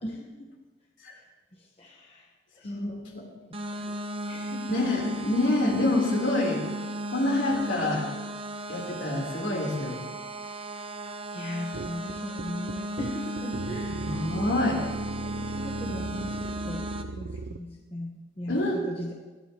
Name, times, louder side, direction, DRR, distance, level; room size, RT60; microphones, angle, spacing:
voice 1, 0.0-0.5 1.1-1.2 1.5-2.3 2.5-3.0 3.5-3.9 4.3-4.7 11.3-14.4 15.2-16.8 17.1-19.1, left 1 dB, 30° left, -2 dB, 1.3 m, -39 dB
voice 2, 2.6-3.2 4.7-6.6 7.1-8.1 8.7-10.0 13.9-14.8 18.5-18.8, left 2 dB, 60° left, -2 dB, 3.8 m, -27 dB
sound 1, 3.5-17.0, right 1 dB, 25° right, 0.9 m, -35 dB
sound 2, 11.7-17.6, right 3 dB, 60° right, 0.6 m, -37 dB
21.0 x 16.0 x 3.1 m, 1.3 s
head